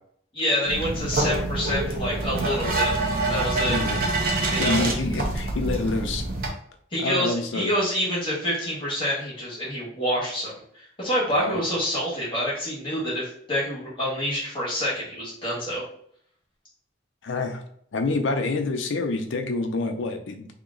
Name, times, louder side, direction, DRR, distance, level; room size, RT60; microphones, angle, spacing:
voice 1, 0.3-2.9 3.3-3.8 4.5-4.8 6.9-15.8, equal, 25° left, -7 dB, 1.4 m, -27 dB
sound 1, 0.7-6.5, right 2 dB, 45° right, 0.7 m, -26 dB
voice 2, 3.7-4.0 4.6-6.2 7.0-7.7 11.3-11.6 17.2-17.6 17.9-20.5, left 3 dB, 70° left, 5 dB, 0.5 m, -27 dB
2.9 x 2.9 x 3.7 m, 0.64 s
head